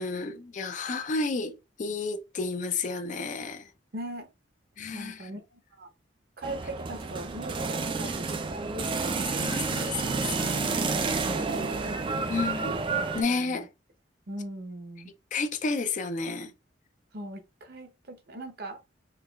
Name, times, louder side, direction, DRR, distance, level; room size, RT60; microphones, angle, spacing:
voice 1, 0.0-3.7 4.8-5.3 9.3-10.9 12.3-12.8 13.1-13.7 15.3-16.5, left 3 dB, 45° left, 0.4 m, -31 dB
voice 2, 3.9-4.3 4.9-5.9 6.4-9.5 11.1-12.8 13.3-13.6 14.3-15.1 17.1-18.8, right 1 dB, 55° right, 0.7 m, -40 dB
sound 1, 6.4-13.2, right 4 dB, 30° right, 0.3 m, -30 dB
4.6 x 2.3 x 2.3 m
head